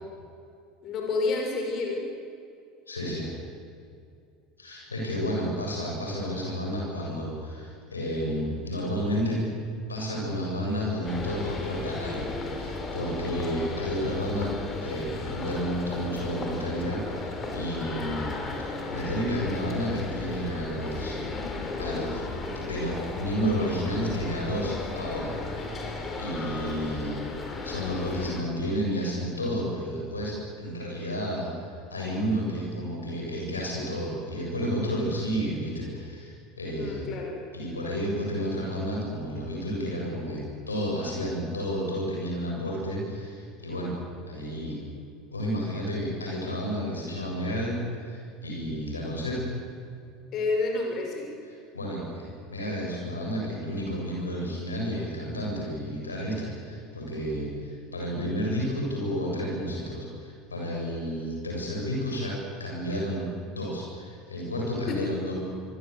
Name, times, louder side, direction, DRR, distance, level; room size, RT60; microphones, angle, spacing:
voice 1, 0.8-2.0 36.8-37.4 50.3-51.3 64.9-65.0, left 3 dB, 45° left, 1 dB, 6.2 m, -29 dB
voice 2, 2.9-3.3 4.6-9.4 9.9-14.5 14.8-18.3 18.6-21.2 21.8-22.2 22.6-27.2 27.6-31.5 31.9-37.0 37.5-43.9 44.3-44.8 45.3-49.4 51.7-65.3, equal, 85° left, -2 dB, 7.5 m, -31 dB
sound 1, 11.0-28.4, left 3 dB, 30° left, 5.3 m, -35 dB
26.0 x 23.5 x 8.3 m, 2.4 s
figure-of-eight pair, 75°, 0 cm